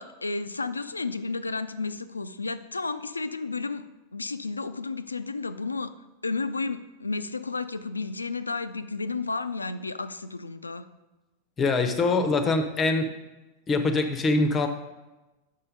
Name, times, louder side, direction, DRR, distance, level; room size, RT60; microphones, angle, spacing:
voice 1, 0.0-3.8 4.1-5.9 6.2-10.8, left 3 dB, 80° left, 13 dB, 0.3 m, -32 dB
voice 2, 11.6-13.1 13.7-14.7, left 3 dB, 25° left, 8 dB, 0.6 m, -23 dB
5.6 x 5.5 x 5.2 m, 1.1 s
figure-of-eight pair, 90°, 0 cm